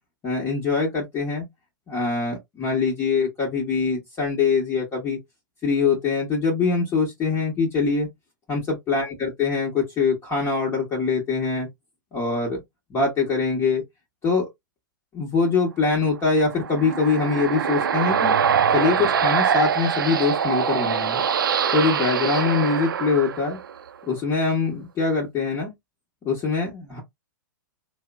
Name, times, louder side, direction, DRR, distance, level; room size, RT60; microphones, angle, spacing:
voice 1, 0.2-1.4 1.9-5.2 5.6-8.1 8.5-11.7 12.1-12.6 12.9-13.8 14.2-14.5 15.1-18.4 18.7-21.2 21.7-23.6 24.1-25.7 26.2-27.0, left 4 dB, 25° left, 1.0 m, -23 dB
sound 1, 16.3-23.9, right 7 dB, 85° right, 0.4 m, -23 dB
2.9 x 2.0 x 2.3 m
hypercardioid pair, 115°, 11 cm